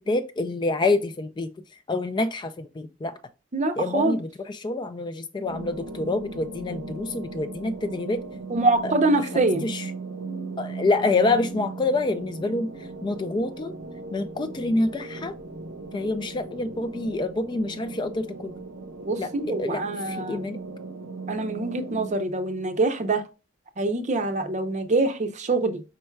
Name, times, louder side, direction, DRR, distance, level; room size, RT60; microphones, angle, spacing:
voice 1, 0.1-1.5 1.9-3.1 3.8-8.2 8.8-8.9 9.3-9.9 10.6-12.7 13.0-13.7 14.1-15.3 15.9-18.6 19.2-20.6, left 2 dB, 25° left, 0.3 m, -27 dB
voice 2, 3.5-4.2 8.5-9.7 19.0-20.5 21.3-23.2 23.8-25.8, right 2 dB, 35° right, 0.6 m, -24 dB
sound 1, 5.5-22.1, right 3 dB, 70° right, 0.7 m, -37 dB
5.3 x 4.5 x 2.2 m
head